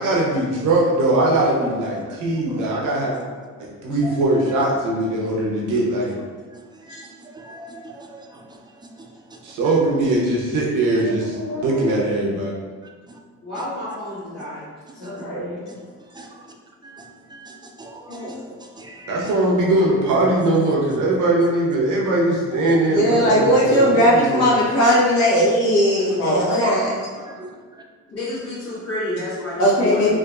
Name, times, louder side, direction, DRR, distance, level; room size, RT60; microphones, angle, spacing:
voice 1, 0.0-3.2 3.6-6.1 9.4-12.5 19.1-24.5, right 2 dB, 85° right, -3 dB, 0.8 m, -20 dB
voice 2, 4.0-4.6 5.2-5.3 6.4-9.8 11.7-11.8 13.1-13.2 13.5-13.7 14.4-14.5 14.9-15.3 15.7-16.5 16.8-19.4 20.1-20.4 22.5-22.9 23.7-23.9 26.1-26.2 26.9-27.8, right 1 dB, 15° right, 1 dB, 0.4 m, -41 dB
voice 3, 11.1-12.0 15.0-15.6 18.1-18.3 22.9-26.9 29.6-30.2, equal, 90° left, -6 dB, 1.1 m, -19 dB
voice 4, 13.4-14.7 15.0-15.6 28.1-30.2, left 1 dB, 55° left, -13 dB, 1.4 m, -30 dB
3.5 x 2.5 x 2.4 m, 1.5 s
cardioid pair, 90°, 30 cm